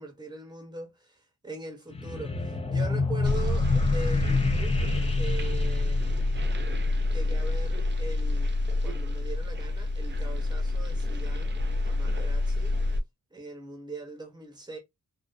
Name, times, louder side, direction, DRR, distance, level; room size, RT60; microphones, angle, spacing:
voice 1, 0.0-4.9 5.1-6.2 6.8-12.7 13.3-14.8, right 2 dB, 15° right, 0.9 m, -41 dB
sound 1, 1.9-6.9, left 3 dB, 20° left, 0.4 m, -29 dB
sound 2, 3.2-13.0, left 2 dB, 35° right, 0.5 m, -27 dB
2.4 x 2.2 x 2.5 m
wide cardioid pair, 105°, 33 cm